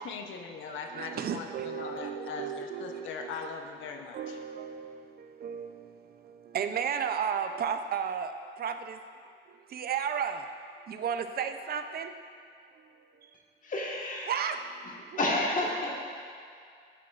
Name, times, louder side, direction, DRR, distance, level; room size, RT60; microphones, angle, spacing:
voice 1, 0.0-4.4, left 5 dB, 75° left, 4 dB, 0.7 m, -40 dB
voice 2, 0.7-3.3 3.9-9.0 9.7-10.5 10.9-12.1 12.8-13.3 14.3-15.2, right 7 dB, 50° right, 8 dB, 0.5 m, -34 dB
voice 3, 13.6-14.3 15.2-16.0, left 2 dB, 40° left, -2 dB, 1.4 m, -30 dB
11.0 x 6.1 x 2.4 m, 2.3 s
cardioid pair, 90°, 20 cm